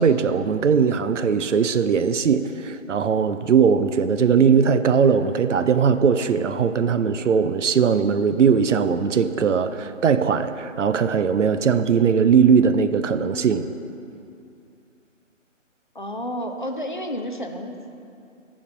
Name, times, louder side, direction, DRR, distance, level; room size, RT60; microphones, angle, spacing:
voice 1, 0.0-13.7, right 6 dB, 70° right, 11 dB, 0.5 m, -19 dB
voice 2, 15.9-17.9, equal, 40° left, 5 dB, 0.5 m, -31 dB
9.9 x 5.1 x 6.0 m, 2.5 s
hypercardioid pair, 170°, 39 cm